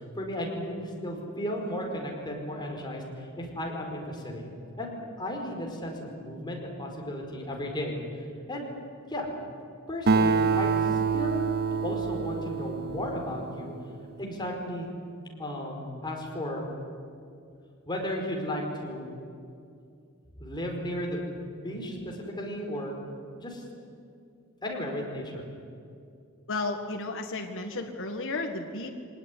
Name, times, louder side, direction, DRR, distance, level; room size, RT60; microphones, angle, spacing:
voice 1, 0.0-4.5 4.8-8.2 8.5-8.7 9.1-9.3 9.9-11.4 11.8-13.7 14.2-14.9 15.4-16.6 17.9-19.0 20.4-21.2 21.5-22.9 23.4-23.6 24.6-25.5, left 1 dB, 20° left, 0 dB, 4.9 m, -34 dB
Acoustic guitar, 10.1-13.9, right 5 dB, 50° right, 0.9 m, -27 dB
voice 2, 26.5-28.9, left 3 dB, 60° left, 3 dB, 1.8 m, -33 dB
24.0 x 19.5 x 9.9 m, 2.4 s
head